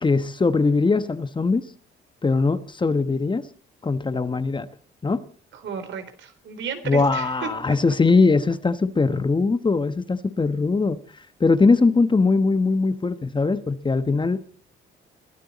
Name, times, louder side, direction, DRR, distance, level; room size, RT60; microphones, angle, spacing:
voice 1, 0.0-1.7 2.2-3.4 3.8-4.7 5.0-5.2 6.8-11.0 11.4-14.4, left 3 dB, 25° left, 1.2 m, -21 dB
voice 2, 5.5-7.8, right 6 dB, 70° right, 3.7 m, -33 dB
22.5 x 13.0 x 4.2 m
cardioid pair, 90°, 20 cm